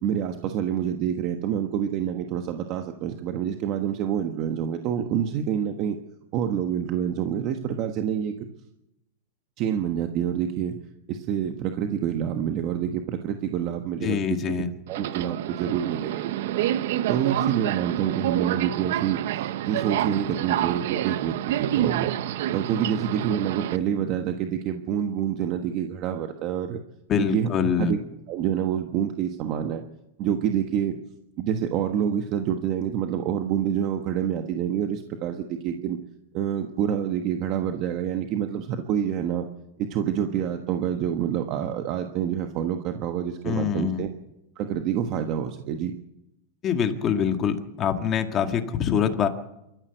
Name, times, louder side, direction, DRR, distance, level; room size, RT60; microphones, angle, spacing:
voice 1, 0.0-6.0 6.3-8.3 9.6-10.8 11.1-14.2 14.4-14.5 14.9-16.6 17.1-19.2 19.7-22.2 22.5-26.8 27.2-28.0 28.3-29.8 30.2-31.0 31.4-36.0 36.3-39.5 39.8-44.1 44.5-45.9, right 9 dB, 35° right, 5 dB, 1.3 m, -27 dB
voice 2, 14.0-14.7 27.1-27.9 43.4-44.0 46.6-49.3, left 8 dB, 25° left, 6 dB, 1.8 m, -24 dB
Subway metro underground, 14.9-23.8, right 12 dB, 60° right, 0.9 m, -28 dB
27.5 x 14.0 x 8.0 m, 0.88 s
supercardioid pair, 165°, 0 cm